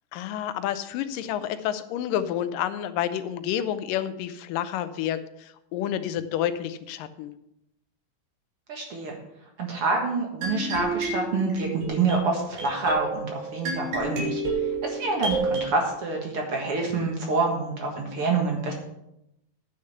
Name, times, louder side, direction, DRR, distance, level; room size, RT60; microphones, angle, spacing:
voice 1, 0.1-7.3, left 10 dB, 90° left, 11 dB, 2.4 m, -29 dB
voice 2, 8.7-9.2 9.6-18.7, right 3 dB, 50° right, 1 dB, 2.1 m, -27 dB
sound 1, 10.4-15.7, right 3 dB, 70° right, 4.0 m, -30 dB
9.8 x 6.5 x 6.9 m, 0.83 s
omnidirectional pair, 3.8 m